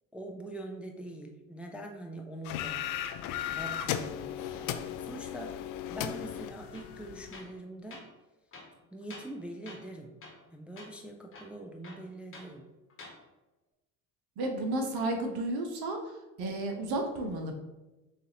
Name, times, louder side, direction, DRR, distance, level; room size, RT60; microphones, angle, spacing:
voice 1, 0.1-2.9 3.5-4.7 5.1-5.6 5.9-8.1 8.9-10.2 10.5-12.6, right 1 dB, 5° right, 1 dB, 0.4 m, -43 dB
sound 1, 2.4-7.4, left 10 dB, 50° left, 0.5 m, -36 dB
Tools, 6.7-6.9 7.3-7.6 7.9-8.1 8.5-9.4 9.7-9.9 10.2-10.5 10.8-10.9 11.3-12.5 12.9-13.2, left 2 dB, 30° left, 1.2 m, -49 dB
voice 2, 14.4-16.0 16.4-17.5, right 2 dB, 55° right, 3 dB, 0.9 m, -32 dB
6.4 x 2.5 x 2.9 m, 1.1 s
figure-of-eight pair, 60°, 45 cm